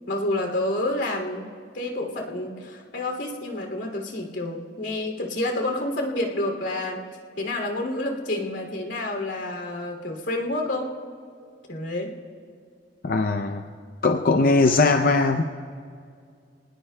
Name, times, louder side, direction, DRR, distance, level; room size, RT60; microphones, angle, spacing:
voice 1, 0.1-1.5 1.7-7.0 7.4-10.9 11.7-12.1, left 1 dB, 90° left, 2 dB, 2.7 m, -29 dB
voice 2, 13.0-13.6 14.0-15.4, left 3 dB, 55° left, 5 dB, 0.6 m, -20 dB
29.0 x 19.5 x 2.2 m, 2.2 s
head